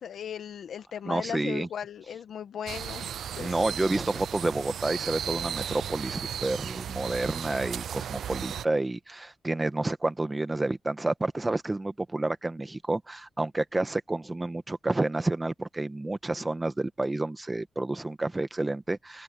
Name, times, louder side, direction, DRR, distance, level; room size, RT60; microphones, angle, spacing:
voice 1, 0.0-3.6, left 8 dB, 85° left, 1.5 m, -37 dB
voice 2, 1.0-1.7 3.4-19.2, right 2 dB, 25° right, 1.7 m, -30 dB
sound 1, 2.7-8.6, right 9 dB, 90° right, 0.4 m, -35 dB
cardioid pair, 60°, 0 cm